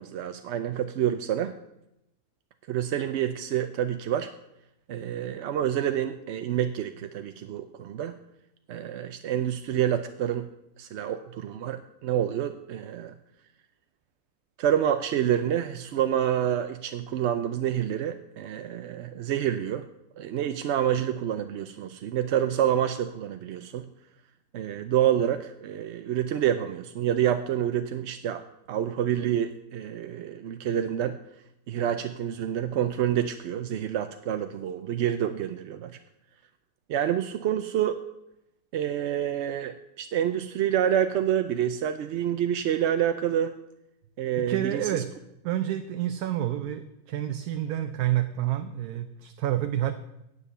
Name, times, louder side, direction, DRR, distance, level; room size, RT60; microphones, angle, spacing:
voice 1, 0.0-1.5 2.7-4.3 4.9-8.2 8.7-10.5 10.8-13.1 14.6-19.9 20.2-23.8 24.5-31.2 31.7-36.0 36.9-38.0 38.7-43.5 44.2-45.0, right 10 dB, 65° right, 9 dB, 0.7 m, -28 dB
voice 2, 44.5-45.1 45.4-49.9, right 12 dB, 85° right, 8 dB, 1.2 m, -28 dB
9.8 x 8.2 x 6.7 m, 0.86 s
omnidirectional pair, 1.5 m